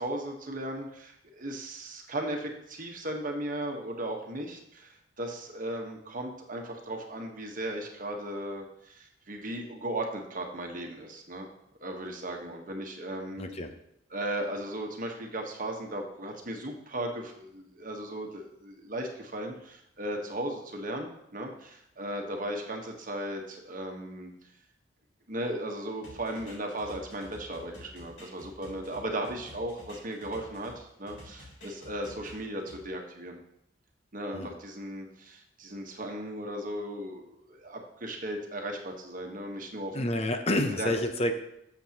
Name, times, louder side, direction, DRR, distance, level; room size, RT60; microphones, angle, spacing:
voice 1, 0.0-11.5 11.8-13.4 14.1-24.3 25.3-33.4 34.1-40.0 40.8-40.9, right 1 dB, 45° right, 2 dB, 1.2 m, -36 dB
voice 2, 13.4-13.7 34.3-34.5 39.9-41.3, left 1 dB, 35° left, 7 dB, 0.7 m, -28 dB
sound 1, 26.0-30.8 31.1-32.8, left 1 dB, 75° left, 3.4 m, -49 dB
12.0 x 7.2 x 2.9 m, 0.77 s
head